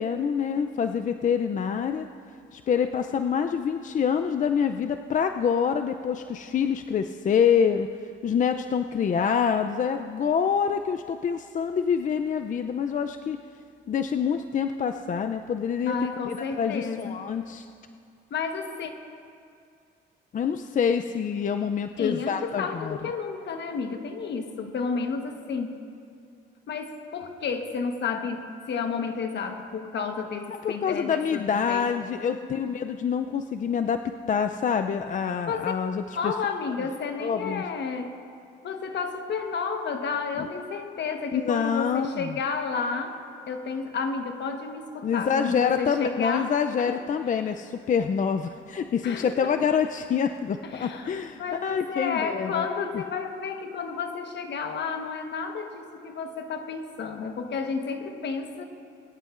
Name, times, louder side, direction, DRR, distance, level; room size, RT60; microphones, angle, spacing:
voice 1, 0.0-2.1 2.5-7.9 8.2-13.4 13.9-15.9 16.3-17.7 20.3-23.0 30.6-36.3 37.2-37.6 40.4-40.5 41.3-42.4 45.0-52.7 52.9-53.0, left 7 dB, 40° left, 7 dB, 0.4 m, -26 dB
voice 2, 15.8-17.2 18.3-18.9 22.0-25.7 26.7-31.9 35.5-35.7 36.1-38.1 38.6-43.2 43.5-47.0 49.0-49.6 50.6-58.7, left 5 dB, 65° left, 5 dB, 1.2 m, -31 dB
22.0 x 11.5 x 2.5 m, 2.4 s
cardioid pair, 90°, 20 cm